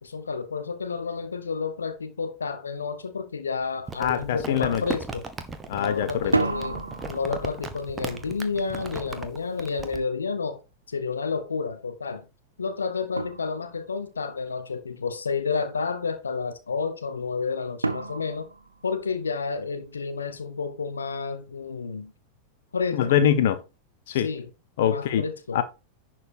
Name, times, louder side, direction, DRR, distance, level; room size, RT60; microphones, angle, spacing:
voice 1, 0.0-5.2 5.7-10.6 10.9-12.2 12.6-18.5 18.8-22.1 22.7-23.2 24.1-24.5 24.8-25.6, left 5 dB, 75° left, 0.9 m, -30 dB
sound 1, 3.6-3.7 4.1-4.6 6.1-11.0 12.6-12.7 13.2-14.1 17.8-19.5, right 3 dB, 80° right, 0.9 m, -33 dB
Crumpling crinkling, 3.9-10.0, right 4 dB, 15° right, 1.3 m, -37 dB
voice 2, 4.0-4.8 5.7-6.3 22.9-23.6 24.1-24.3 24.8-25.3 25.5-25.6, left 9 dB, 55° left, 1.2 m, -23 dB
11.0 x 4.6 x 4.4 m
figure-of-eight pair, 90°, 0 cm